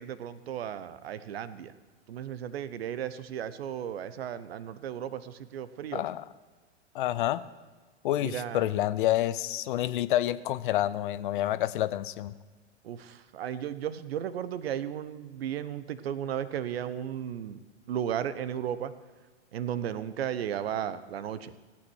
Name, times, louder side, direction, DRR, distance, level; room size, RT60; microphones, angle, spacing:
voice 1, 0.0-1.7 2.1-6.0 8.2-8.7 12.8-17.6 17.9-18.9 19.5-21.5, right 9 dB, 55° right, 15 dB, 1.0 m, -35 dB
voice 2, 5.9-6.3 6.9-7.4 8.0-12.3, left 13 dB, 45° left, 16 dB, 0.6 m, -28 dB
16.5 x 8.7 x 6.2 m, 1.3 s
figure-of-eight pair, 105°, 35 cm